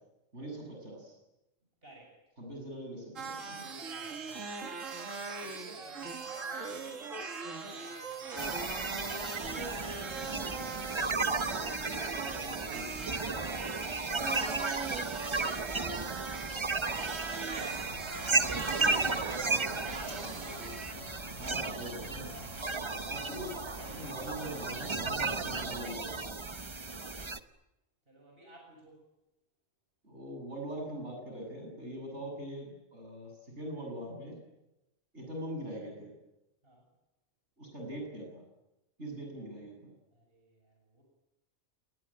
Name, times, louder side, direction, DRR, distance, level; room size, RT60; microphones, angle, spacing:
voice 1, 0.3-1.2 2.4-3.8 9.8-9.9 11.8-12.8 16.7-16.9 18.4-19.2 21.4-22.5 23.0-26.4 30.0-34.4 35.1-36.1 37.6-38.4 39.0-39.9, right 1 dB, 65° right, 2 dB, 8.2 m, -43 dB
voice 2, 1.8-2.2 3.7-4.6 5.4-9.0 9.5-11.0 12.2-17.6 18.9-20.7 26.5-27.3 28.1-29.1 36.6-36.9 40.1-41.0, right 1 dB, 50° right, 0 dB, 7.1 m, -54 dB
sound 1, 3.2-20.9, right 4 dB, 85° right, 2.2 m, -41 dB
sound 2, 8.4-27.4, right 3 dB, 25° right, 1.0 m, -34 dB
Bird, 17.6-25.8, left 1 dB, 85° left, 6.6 m, -48 dB
29.5 x 20.5 x 8.9 m, 0.94 s
omnidirectional pair, 1.3 m